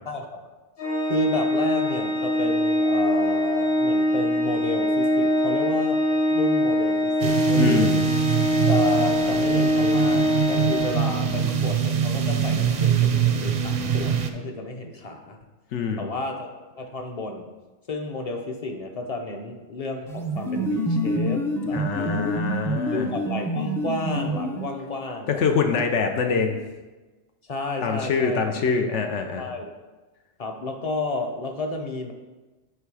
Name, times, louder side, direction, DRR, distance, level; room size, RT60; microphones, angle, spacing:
voice 1, 0.1-0.6 1.1-7.9 8.7-15.4 16.0-17.5 17.9-22.4 22.9-25.8 27.4-28.5 29.4-29.7 30.4-32.1, left 2 dB, 35° left, 4 dB, 0.7 m, -32 dB
Organ, 0.8-11.6, equal, 55° left, 1.3 m, -23 dB
sound 1, 7.2-14.3, right 8 dB, 50° right, 0.5 m, -24 dB
voice 2, 7.6-8.0 15.7-16.1 21.7-23.1 25.3-26.6 27.8-29.5, left 5 dB, 85° left, 4 dB, 1.1 m, -24 dB
sound 2, 20.1-25.0, equal, 5° left, 0.3 m, -27 dB
9.5 x 3.3 x 4.8 m, 1.2 s
omnidirectional pair, 1.2 m